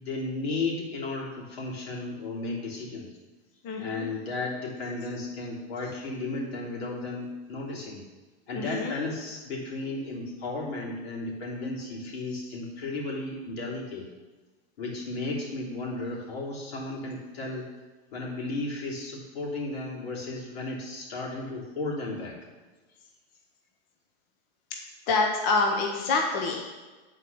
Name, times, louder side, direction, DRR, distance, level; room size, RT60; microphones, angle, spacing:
voice 1, 0.0-3.1 3.8-8.0 8.5-14.1 14.8-17.7 18.1-22.3, left 2 dB, 80° left, -3 dB, 3.1 m, -34 dB
voice 2, 3.6-4.1 8.5-8.9 25.1-26.6, left 3 dB, 30° left, 1 dB, 0.8 m, -26 dB
8.7 x 4.6 x 6.9 m, 1.2 s
supercardioid pair, 165°, 30 cm